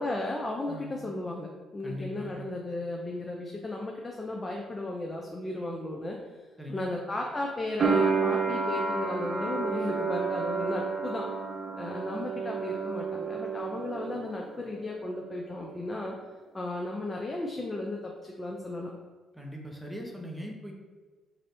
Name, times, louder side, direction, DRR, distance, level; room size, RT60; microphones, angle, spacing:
voice 1, 0.0-6.2 6.7-11.3 11.8-16.2 16.5-18.9, left 2 dB, 25° left, 0 dB, 0.5 m, -35 dB
voice 2, 0.7-1.1 1.8-2.5 6.6-7.0 19.3-20.7, equal, ahead, -1 dB, 0.8 m, -40 dB
sound 1, 7.8-14.6 14.9-15.7, right 5 dB, 50° right, 0.5 m, -31 dB
3.2 x 2.7 x 4.2 m, 1.3 s
cardioid pair, 90°, 0 cm